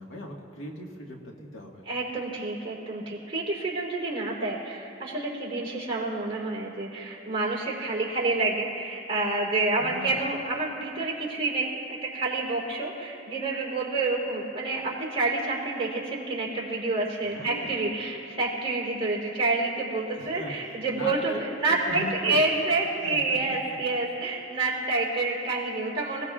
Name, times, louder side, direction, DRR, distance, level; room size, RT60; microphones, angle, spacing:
voice 1, 0.0-1.8 9.8-10.3 17.2-17.8 20.2-21.4 21.7-22.5 23.0-23.4, left 1 dB, 75° left, -1 dB, 1.8 m, -39 dB
voice 2, 1.9-26.2, right 3 dB, 30° right, -6 dB, 3.8 m, -28 dB
26.5 x 17.5 x 2.5 m, 2.9 s
head